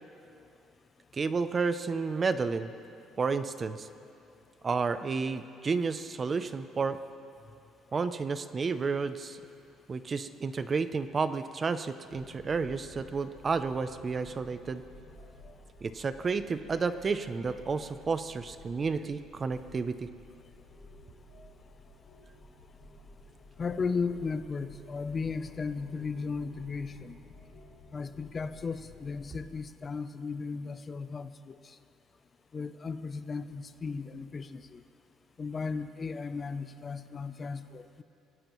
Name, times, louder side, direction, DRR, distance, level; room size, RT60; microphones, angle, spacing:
voice 1, 1.1-2.7 3.2-3.9 4.6-7.0 7.9-9.4 9.9-14.8 15.8-20.1, right 4 dB, 25° right, 12 dB, 0.5 m, -31 dB
sound 1, 12.1-29.6, left 2 dB, 55° left, 4.7 m, -53 dB
voice 2, 23.6-27.2 27.9-31.8 32.5-34.8 35.4-38.0, left 4 dB, 25° left, 11 dB, 0.5 m, -35 dB
25.5 x 17.0 x 3.1 m, 2.7 s
cardioid pair, 145°, 0 cm